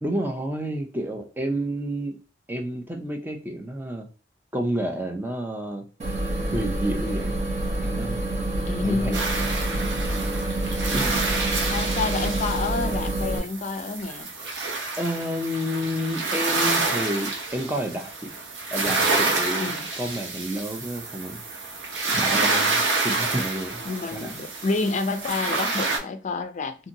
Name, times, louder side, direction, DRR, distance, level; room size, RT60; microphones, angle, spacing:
voice 1, 0.0-2.2 2.5-4.1 4.5-5.8 6.5-7.3 7.8-8.2 8.8-9.2 9.7-9.9 10.9-11.3 15.0-18.3 18.7-21.4 22.2-23.8 24.1-24.4, equal, 10° right, 0.5 m, -30 dB
sound 1, 6.0-13.4, right 1 dB, 40° right, 0.9 m, -27 dB
voice 2, 8.6-9.3 11.7-14.3 19.6-19.9 23.8-26.8, left 3 dB, 40° left, 0.4 m, -28 dB
sound 2, 9.1-26.0, right 3 dB, 85° right, 0.8 m, -28 dB
2.7 x 2.6 x 2.7 m
head